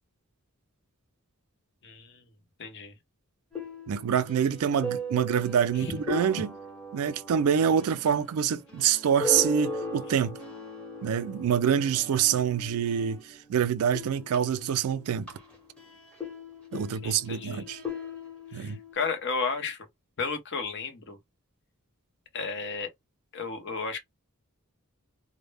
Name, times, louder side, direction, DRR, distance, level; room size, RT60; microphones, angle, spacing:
voice 1, 1.8-2.1 2.6-2.9 17.0-17.6 18.5-19.8 20.2-21.2 22.3-22.9 23.3-24.0, left 4 dB, 55° left, 0.7 m, -33 dB
sound 1, 3.5-13.5 13.8-18.9, left 1 dB, 5° left, 0.8 m, -38 dB
voice 2, 3.9-6.5 6.9-10.4 11.0-15.3 16.7-17.8 18.5-18.8, right 8 dB, 75° right, 0.3 m, -26 dB
2.0 x 2.0 x 3.2 m
head